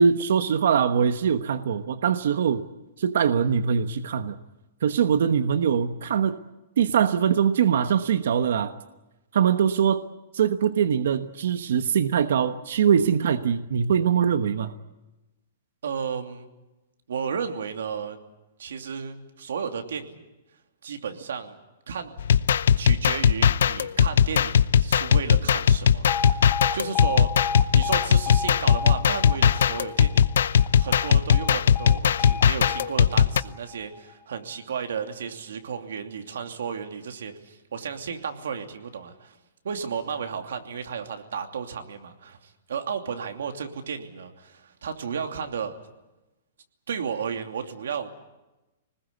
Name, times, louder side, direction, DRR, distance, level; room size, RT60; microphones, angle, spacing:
voice 1, 0.0-2.6 3.0-4.4 4.8-6.4 6.8-8.7 9.3-10.0 10.3-14.7, right 7 dB, 70° right, 10 dB, 1.2 m, -22 dB
voice 2, 15.8-16.5 17.1-18.2 18.6-20.3 20.8-21.6 21.9-22.1 22.8-27.3 27.7-30.3 30.6-39.4 39.6-45.7 46.9-48.1, right 6 dB, 90° right, 5 dB, 2.8 m, -33 dB
sound 1, 22.2-33.4, left 8 dB, 80° left, 0.7 m, -19 dB
Alarm, 26.1-34.1, left 6 dB, 20° left, 0.8 m, -34 dB
25.5 x 20.0 x 8.3 m, 1.0 s
hypercardioid pair, 165°, 0 cm